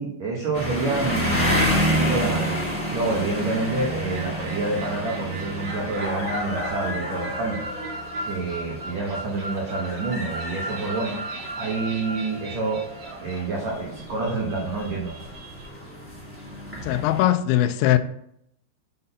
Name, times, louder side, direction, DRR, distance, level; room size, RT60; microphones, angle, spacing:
voice 1, 0.0-2.6 2.9-7.6 8.2-11.3 11.6-12.8 13.2-15.2, right 3 dB, 80° right, 1.5 m, -28 dB
sound 1, 0.5-17.2, equal, 5° right, 1.4 m, -30 dB
sound 2, 3.4-15.7, right 2 dB, 55° right, 2.9 m, -37 dB
voice 2, 16.8-18.0, left 13 dB, 85° left, 2.8 m, -20 dB
7.6 x 4.1 x 5.5 m
omnidirectional pair, 5.3 m